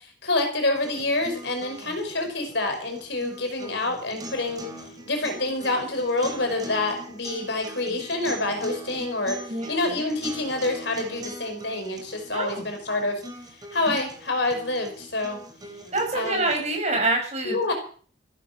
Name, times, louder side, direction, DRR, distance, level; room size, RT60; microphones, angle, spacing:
voice 1, 0.0-4.7 5.0-9.4 9.7-13.2 13.7-15.4 16.1-16.5 17.4-17.7, left 2 dB, 65° left, 4 dB, 5.3 m, -27 dB
sound 1, 0.8-16.8, right 1 dB, 20° right, 3.1 m, -42 dB
voice 2, 12.3-12.7 13.9-14.0 15.9-17.7, right 2 dB, 35° right, 2 dB, 6.4 m, -26 dB
15.0 x 13.0 x 6.0 m, 0.44 s
head